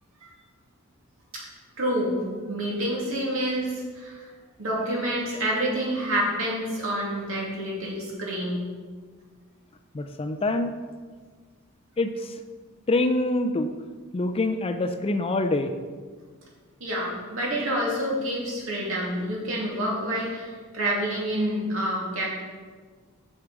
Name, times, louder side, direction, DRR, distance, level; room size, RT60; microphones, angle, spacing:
voice 1, 1.8-4.3 4.6-8.6 16.8-22.2, right 1 dB, 65° right, -4 dB, 2.4 m, -28 dB
voice 2, 9.9-10.7 12.0-12.3 12.9-13.7 14.1-15.7, left 2 dB, 25° left, 7 dB, 0.4 m, -25 dB
6.8 x 6.5 x 4.8 m, 1.5 s
head